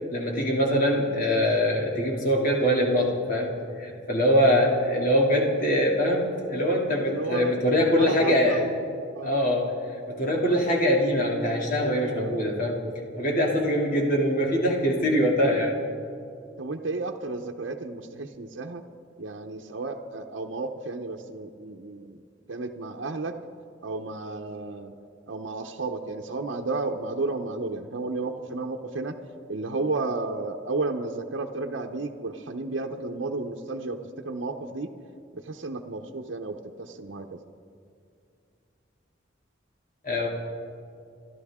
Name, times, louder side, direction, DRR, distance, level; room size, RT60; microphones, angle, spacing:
voice 1, 0.1-3.5 3.8-8.6 9.2-9.7 10.1-12.8 13.1-15.8 40.0-40.3, equal, 45° left, -1 dB, 2.6 m, -23 dB
voice 2, 7.0-7.5 7.9-8.7 9.1-9.3 16.6-18.8 19.2-22.2 22.5-23.4 23.8-24.9 25.3-29.1 29.5-34.0 34.2-34.9 35.3-37.4, right 3 dB, 80° right, 2 dB, 0.8 m, -32 dB
28.0 x 12.5 x 3.6 m, 2.4 s
head